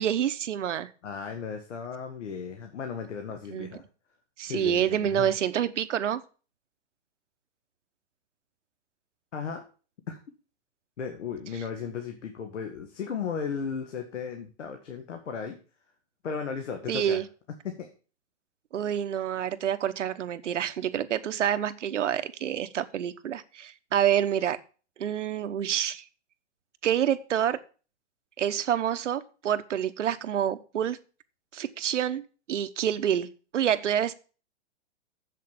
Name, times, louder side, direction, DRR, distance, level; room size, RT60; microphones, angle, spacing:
voice 1, 0.0-0.9 3.5-3.7 4.4-6.2 16.9-17.2 18.7-24.6 25.0-26.0 26.8-27.6 28.4-31.0 31.5-32.2 32.5-33.3 33.5-34.1, right 9 dB, 85° right, 11 dB, 1.1 m, -27 dB
voice 2, 1.0-3.8 4.5-5.3 9.3-9.6 10.1-10.2 11.0-15.6 16.2-17.2 17.6-17.9, left 6 dB, 80° left, 5 dB, 1.8 m, -35 dB
7.7 x 6.6 x 7.1 m, 0.37 s
hypercardioid pair, 170°, 36 cm